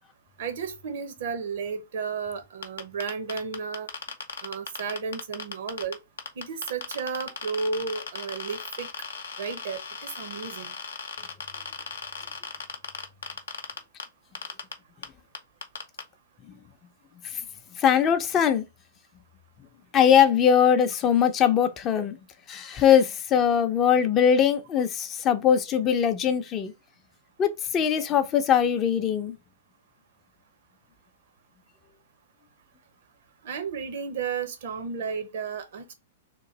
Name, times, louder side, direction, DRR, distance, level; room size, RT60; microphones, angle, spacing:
voice 1, 0.4-3.9 4.4-6.0 6.4-8.9 9.4-10.7 33.4-35.9, right 5 dB, 60° right, 0.9 m, -33 dB
sound 1, 2.6-5.9 6.2-14.0 14.3-14.7 15.0-15.1 15.3-16.0, left 5 dB, 80° left, 0.7 m, -36 dB
voice 2, 17.8-18.6 19.9-22.1 22.5-26.7 27.4-29.3, left 8 dB, 30° left, 0.5 m, -21 dB
3.0 x 2.6 x 3.8 m
figure-of-eight pair, 105°, 0 cm